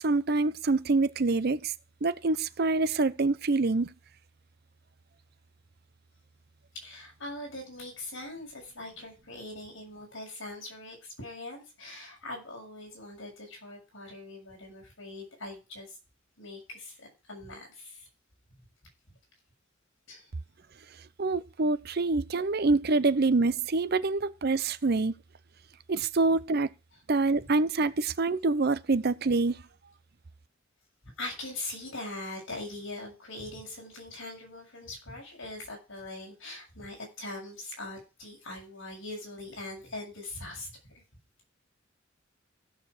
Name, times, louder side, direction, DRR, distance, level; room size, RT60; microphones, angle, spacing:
voice 1, 0.0-1.7 2.0-3.9 21.2-25.1 25.9-26.7 27.1-29.6, right 3 dB, 50° right, 0.6 m, -26 dB
voice 2, 6.7-16.0 16.4-18.1 20.1-20.3 31.0-41.0, left 2 dB, 70° left, 7.2 m, -42 dB
15.5 x 7.0 x 4.9 m
head